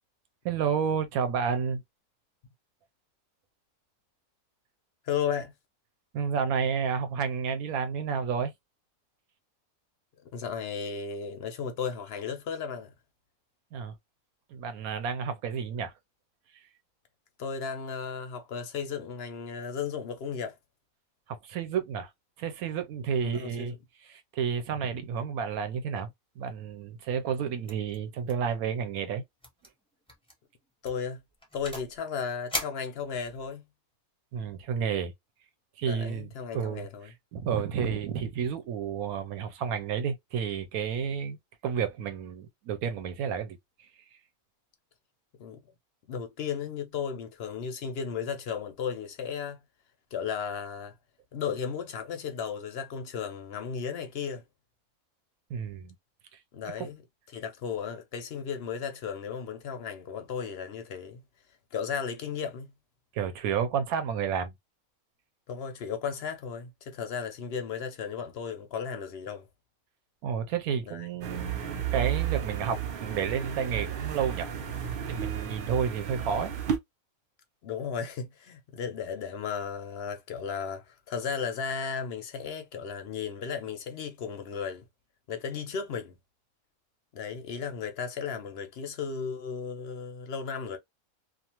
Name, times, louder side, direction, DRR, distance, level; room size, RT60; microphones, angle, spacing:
voice 1, 0.4-1.8 6.1-8.5 13.7-13.9 14.5-15.9 21.3-22.1 22.4-23.7 24.0-26.1 26.4-29.2 34.3-35.1 35.8-41.4 41.6-43.6 55.5-55.9 56.8-56.9 63.1-64.5 70.2-74.5 75.1-76.5, right 7 dB, 80° right, 1.0 m, -31 dB
voice 2, 5.0-5.5 10.3-12.9 17.4-20.6 23.1-23.7 30.8-31.2 31.5-33.6 35.9-37.1 45.4-45.6 46.1-49.6 50.1-50.9 51.3-54.4 56.5-57.0 57.3-61.2 61.7-62.7 65.5-69.5 70.9-71.1 77.6-84.8 85.3-86.2 87.1-90.8, left 6 dB, 60° left, 0.6 m, -35 dB
sound 1, 27.7-28.0 28.3-28.5 28.8-28.9 29.4-29.7 30.1-30.3 30.8-32.0 32.5-33.5, equal, 5° left, 0.4 m, -38 dB
sound 2, 71.2-76.8, right 9 dB, 60° right, 0.5 m, -33 dB
2.4 x 2.4 x 2.8 m
omnidirectional pair, 1.5 m